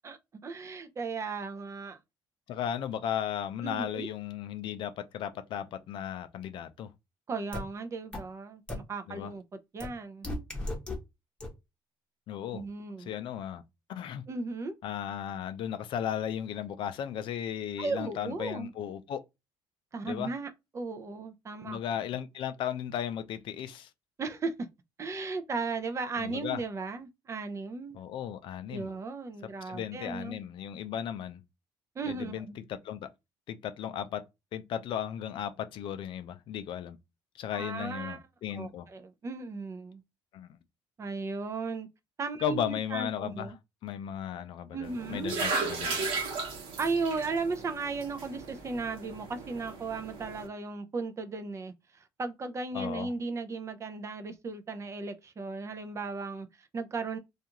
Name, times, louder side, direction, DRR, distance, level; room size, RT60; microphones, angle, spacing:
voice 1, 0.0-2.0 3.6-4.1 7.3-9.4 9.7-10.3 12.5-13.1 14.3-14.8 17.8-18.7 19.9-21.8 24.2-24.7 25.0-28.0 28.7-30.4 32.0-32.6 37.5-38.2 38.5-40.0 41.0-41.9 42.2-43.6 44.7-45.5 46.8-57.2, right 4 dB, 30° right, 0.5 m, -36 dB
voice 2, 2.5-6.9 9.1-9.3 12.3-12.7 13.0-13.6 13.9-14.2 14.8-19.2 20.0-20.3 21.7-23.9 26.2-26.6 27.9-28.9 29.6-31.4 32.1-33.1 33.5-34.2 34.5-37.0 37.3-38.9 40.3-40.5 42.4-43.5 43.8-46.0 52.7-53.1, left 9 dB, 65° left, 0.4 m, -35 dB
sound 1, 7.5-7.6 8.1-8.2 8.7-8.8 9.8-9.9 10.2-11.0 11.4-11.5, left 2 dB, 10° left, 0.9 m, -34 dB
sound 2, 44.8-50.5, right 4 dB, 75° right, 1.0 m, -36 dB
2.5 x 2.3 x 2.8 m
cardioid pair, 110°, 9 cm